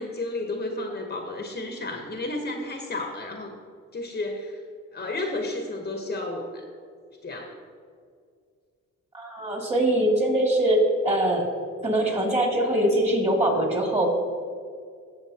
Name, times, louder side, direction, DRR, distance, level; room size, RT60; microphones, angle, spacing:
voice 1, 0.0-3.5 3.9-4.6 4.9-6.6 7.2-7.5, left 2 dB, 30° left, 3 dB, 1.1 m, -32 dB
voice 2, 9.1-11.5 11.8-14.1, right 1 dB, 20° right, 0 dB, 2.4 m, -22 dB
15.5 x 6.8 x 2.9 m, 2.2 s
cardioid pair, 90°, 30 cm